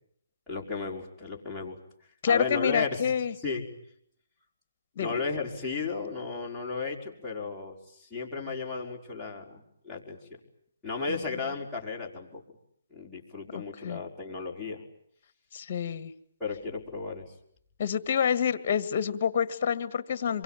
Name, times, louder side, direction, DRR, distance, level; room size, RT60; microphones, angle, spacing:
voice 1, 0.5-1.8 2.3-3.7 5.0-10.2 10.8-12.4 12.9-14.8 16.4-17.3, left 4 dB, ahead, -8 dB, 5.2 m, -34 dB
voice 2, 2.2-3.3 5.0-5.2 13.8-14.0 15.5-16.1 17.8-20.4, left 7 dB, 45° left, 13 dB, 1.9 m, -27 dB
27.5 x 23.5 x 9.3 m, 0.70 s
hypercardioid pair, 155°, 0 cm